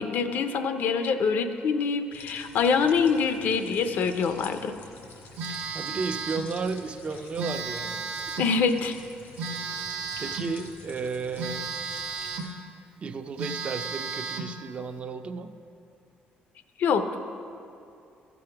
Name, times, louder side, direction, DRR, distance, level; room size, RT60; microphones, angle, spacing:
voice 1, 0.0-4.7 8.4-9.0 16.8-17.2, left 5 dB, 65° left, 8 dB, 0.6 m, -25 dB
sound 1, 2.1-12.5, left 3 dB, 85° left, 2.0 m, -48 dB
Telephone, 5.4-6.5 7.4-8.6 9.4-10.6 11.4-12.6 13.0-13.1 13.4-14.6, right 4 dB, 90° right, 1.0 m, -34 dB
voice 2, 5.7-8.1 10.2-11.8 13.0-15.6, right 4 dB, 35° right, 8 dB, 0.4 m, -33 dB
15.0 x 5.0 x 5.8 m, 2.6 s
cardioid pair, 125°, 3 cm